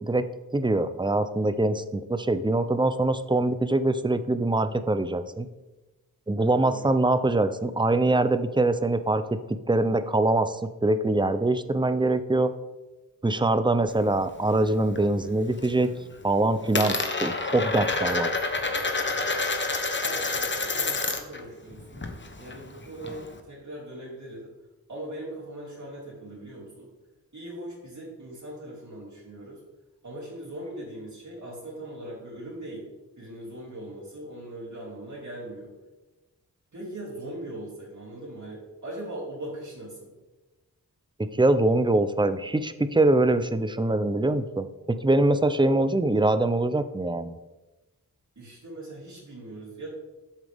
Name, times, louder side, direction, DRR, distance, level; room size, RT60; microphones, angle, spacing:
voice 1, 0.5-5.5 6.3-12.5 13.2-15.9 16.2-18.3 41.2-47.3, right 2 dB, 15° right, 11 dB, 0.5 m, -23 dB
Coin (dropping), 13.9-15.0 15.4-15.9 16.1-21.4 21.7-23.4, left 3 dB, 30° left, 1.0 m, -29 dB
voice 2, 20.0-22.0 22.4-24.5 24.9-26.9 27.3-29.6 30.0-32.9 33.2-35.7 36.7-40.1 48.3-49.9, right 1 dB, 55° right, -6 dB, 3.2 m, -40 dB
12.5 x 7.4 x 3.5 m, 1.1 s
wide cardioid pair, 100°, 36 cm